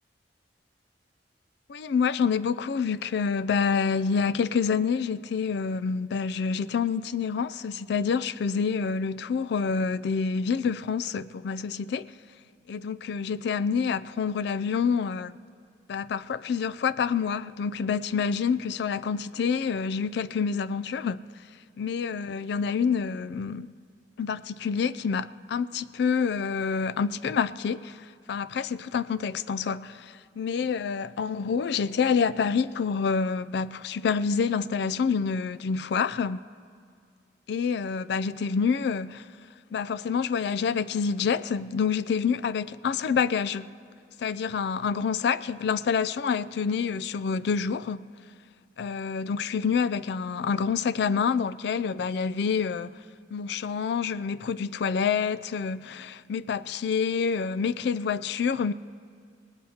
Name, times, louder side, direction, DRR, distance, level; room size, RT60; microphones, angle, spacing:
voice 1, 1.7-12.1 12.7-15.4 15.9-21.2 21.8-23.7 24.2-36.4 37.5-39.2 39.7-43.7 44.2-48.1 48.8-52.9 53.3-58.7, left 6 dB, 65° left, 0.4 m, -27 dB
25.5 x 19.0 x 2.8 m
head